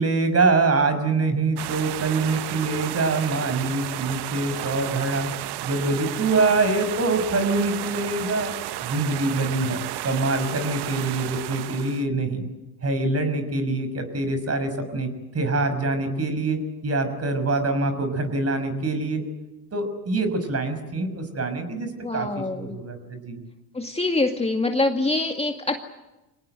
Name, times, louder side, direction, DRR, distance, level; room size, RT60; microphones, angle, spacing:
voice 1, 0.0-5.3 5.6-8.5 8.8-9.8 10.0-12.4 12.8-19.2 19.7-23.4, right 3 dB, 30° right, 9 dB, 6.1 m, -24 dB
sound 1, 1.6-12.1, right 14 dB, 50° right, 1.2 m, -33 dB
voice 2, 22.0-22.8 23.7-25.8, left 2 dB, 10° left, 4 dB, 2.1 m, -25 dB
26.5 x 19.0 x 9.2 m, 1.0 s
hypercardioid pair, 75°, 49 cm